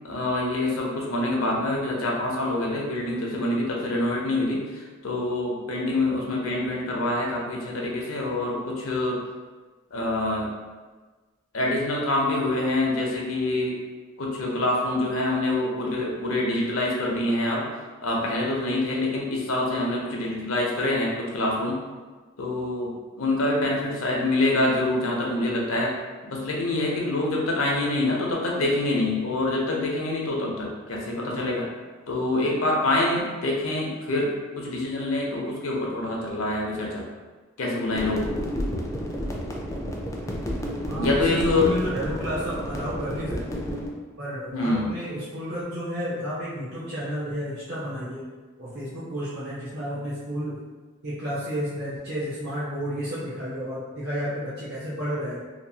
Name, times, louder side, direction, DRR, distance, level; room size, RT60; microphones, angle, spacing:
voice 1, 0.0-9.2 9.9-10.5 11.5-13.8 14.2-17.6 18.0-21.8 22.4-25.9 26.2-31.6 32.1-34.3 34.6-37.0 37.6-38.4 41.0-41.7 44.5-44.9, left 2 dB, 80° left, -2 dB, 0.6 m, -26 dB
sound 1, 37.9-43.9, equal, 15° left, 0.3 m, -31 dB
voice 2, 40.9-43.6 44.2-48.2 48.6-50.6 51.0-55.4, equal, 55° right, -10 dB, 0.6 m, -31 dB
2.8 x 2.3 x 2.7 m, 1.3 s
head